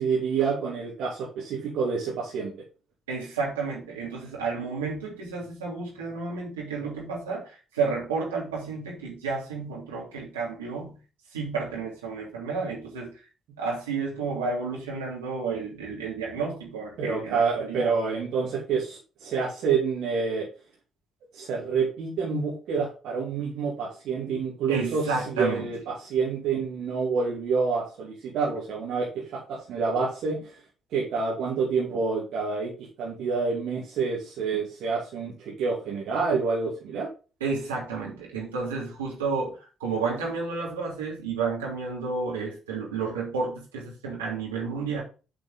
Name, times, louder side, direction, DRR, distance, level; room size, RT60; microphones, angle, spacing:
voice 1, 0.0-2.5 17.0-20.4 21.3-30.5 30.9-37.1, right 5 dB, 60° right, -5 dB, 2.5 m, -28 dB
voice 2, 3.1-11.0 11.3-13.1 13.6-17.9 24.7-25.8 37.4-45.0, right 4 dB, 80° right, -3 dB, 2.9 m, -31 dB
9.2 x 5.2 x 3.6 m, 0.33 s
figure-of-eight pair, 45°, 0 cm